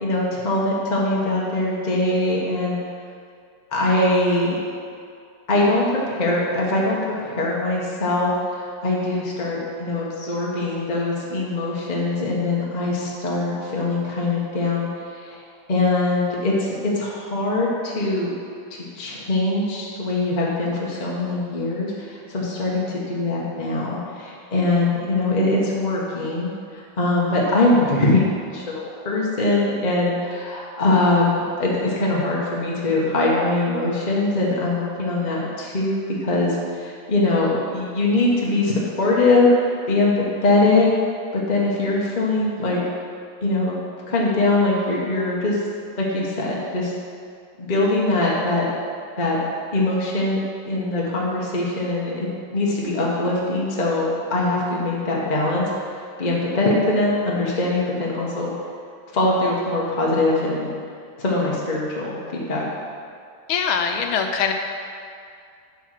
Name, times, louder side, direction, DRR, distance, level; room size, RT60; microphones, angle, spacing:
voice 1, 0.0-2.8 3.7-4.6 5.5-15.4 15.7-18.3 18.9-39.5 39.9-40.9 41.3-42.8 43.4-43.8 44.1-45.6 46.0-46.9 47.6-48.7 49.2-49.4 49.7-50.4 50.6-55.6 56.2-58.5 59.1-60.7 61.2-62.6, left 2 dB, 25° left, -4 dB, 1.2 m, -22 dB
voice 2, 63.5-64.5, left 6 dB, 85° left, 4 dB, 1.6 m, -22 dB
10.0 x 4.3 x 6.6 m, 2.3 s
omnidirectional pair, 2.2 m